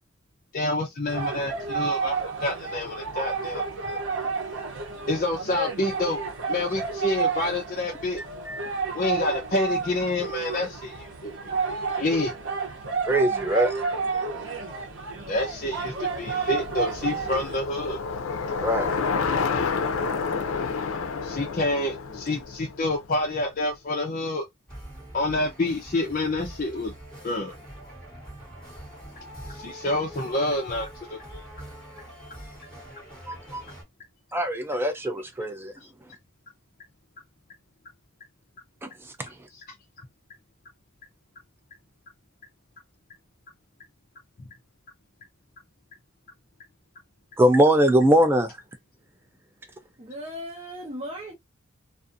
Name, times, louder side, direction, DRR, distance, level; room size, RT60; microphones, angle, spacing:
voice 1, 0.5-4.0 5.1-6.2 6.5-8.2 8.9-11.3 11.9-12.3 13.5-13.6 15.3-18.0 21.2-24.4 25.1-26.9 27.2-27.5 29.2-31.4 39.6-39.7, left 2 dB, 40° left, 0.6 m, -28 dB
sound 1, 1.1-17.6, right 5 dB, 65° right, 0.8 m, -31 dB
voice 2, 13.0-13.7 18.6-18.9 33.3-33.6 34.3-35.7 38.8-39.3 47.4-48.6, right 1 dB, 10° right, 0.3 m, -22 dB
Bicycle, 15.1-23.4, left 5 dB, 85° left, 0.5 m, -30 dB
sound 2, 24.7-33.8, right 1 dB, 5° left, 1.5 m, -44 dB
voice 3, 50.0-51.3, equal, 30° right, 0.8 m, -37 dB
2.5 x 2.5 x 2.5 m
head